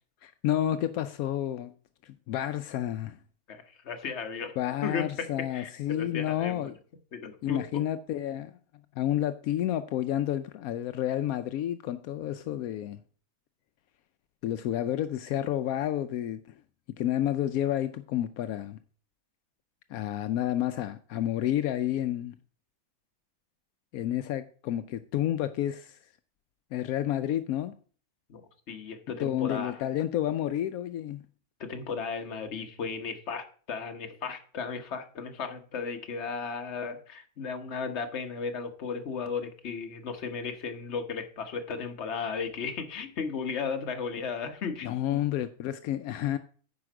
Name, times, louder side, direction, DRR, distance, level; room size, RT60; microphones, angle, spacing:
voice 1, 0.2-1.7 2.0-3.2 4.6-6.8 7.4-8.6 9.0-13.0 14.4-16.4 17.0-18.8 19.9-22.3 23.9-26.0 26.7-27.7 29.2-31.2 44.8-46.4, left 12 dB, 80° left, 1.0 m, -30 dB
voice 2, 3.5-4.5 4.8-6.7 7.1-7.6 28.3-28.4 28.7-29.8 31.6-45.2, left 5 dB, 55° left, 1.3 m, -35 dB
9.6 x 5.1 x 6.0 m
omnidirectional pair, 1.5 m